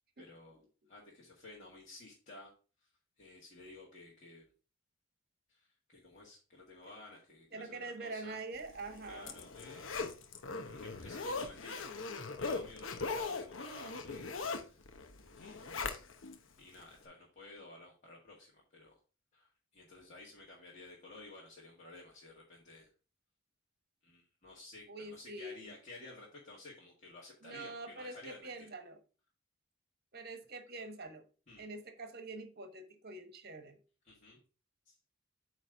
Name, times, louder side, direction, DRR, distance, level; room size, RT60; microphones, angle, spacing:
voice 1, 0.2-0.6 0.9-2.5 2.8-2.9 3.2-4.5 5.5-8.4 9.1-10.2 10.6-14.9 15.4-16.0 16.6-19.0 19.3-22.9 24.0-28.7 31.5-31.6 34.0-34.4 34.9-35.0, left 2 dB, 35° left, -4 dB, 1.7 m, -54 dB
voice 2, 7.5-9.4 24.9-25.7 27.4-29.0 30.1-31.2 31.6-33.8, right 2 dB, 50° right, 8 dB, 1.2 m, -45 dB
Zipper (clothing), 8.8-16.4 16.8-16.9, left 4 dB, 65° left, 0.8 m, -40 dB
8.4 x 3.2 x 5.1 m, 0.36 s
head